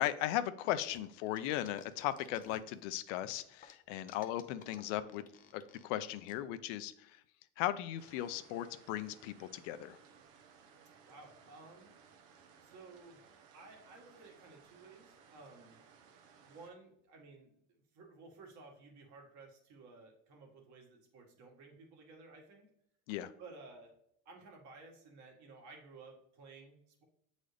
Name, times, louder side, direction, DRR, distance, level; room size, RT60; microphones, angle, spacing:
voice 1, 0.0-5.2 5.5-7.2 7.6-10.0 23.1-23.3, left 13 dB, 70° left, 12 dB, 0.6 m, -37 dB
sound 1, 0.9-2.8 3.2-6.3, left 7 dB, 20° left, 0.5 m, -58 dB
sound 2, 8.0-16.7, right 6 dB, 90° right, 1.1 m, -61 dB
voice 2, 11.1-11.9 12.6-13.2 13.5-15.8 16.4-17.5 17.9-22.7 23.4-23.9 24.3-27.0, right 3 dB, 50° right, 1 dB, 1.8 m, -55 dB
8.1 x 4.0 x 3.3 m, 0.72 s
supercardioid pair, 135°, 38 cm